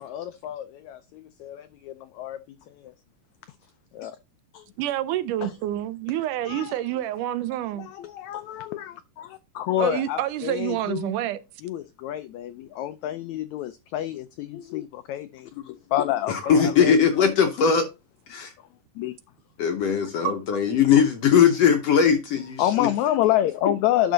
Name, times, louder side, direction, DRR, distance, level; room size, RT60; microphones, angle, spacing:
voice 1, 0.0-2.4 3.9-4.1 4.5-4.6 5.4-5.5 6.5-6.7 7.8-11.1 11.6-17.0 19.0-19.1 22.6-24.1, left 12 dB, 85° left, 1.6 m, -28 dB
voice 2, 4.8-7.9 9.8-11.4, right 12 dB, 80° right, 2.0 m, -28 dB
voice 3, 16.3-17.9 18.3-18.5 19.6-22.9, left 7 dB, 70° left, 1.6 m, -20 dB
11.5 x 4.6 x 3.9 m
omnidirectional pair, 3.9 m